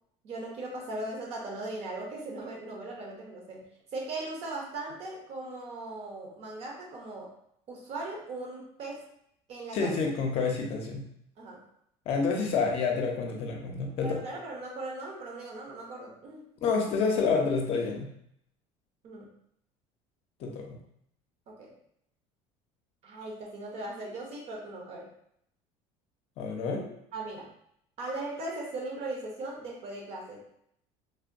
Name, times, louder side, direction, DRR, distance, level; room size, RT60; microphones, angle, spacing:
voice 1, 0.2-7.3 7.7-9.0 9.5-10.0 11.4-11.6 14.0-16.5 19.0-19.3 21.5-21.7 23.0-25.1 27.1-27.5 28.0-30.5, right 2 dB, 50° right, 0 dB, 0.8 m, -39 dB
voice 2, 9.7-11.0 12.1-14.2 16.6-18.1 20.4-20.8 26.4-26.9, left 4 dB, 45° left, 1 dB, 0.6 m, -28 dB
3.4 x 2.1 x 2.5 m, 0.71 s
cardioid pair, 145°, 14 cm